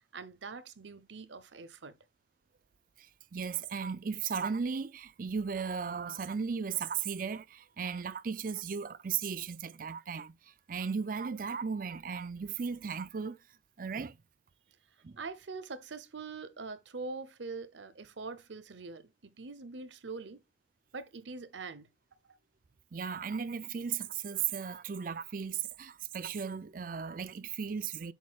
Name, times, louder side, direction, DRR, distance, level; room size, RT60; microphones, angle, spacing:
voice 1, 0.1-1.9 15.2-20.4 20.9-21.9, right 4 dB, 85° right, 0.8 m, -43 dB
voice 2, 3.0-13.4 13.8-14.2 15.0-15.2 22.9-28.1, right 6 dB, 50° right, 0.4 m, -36 dB
8.0 x 6.3 x 2.4 m
head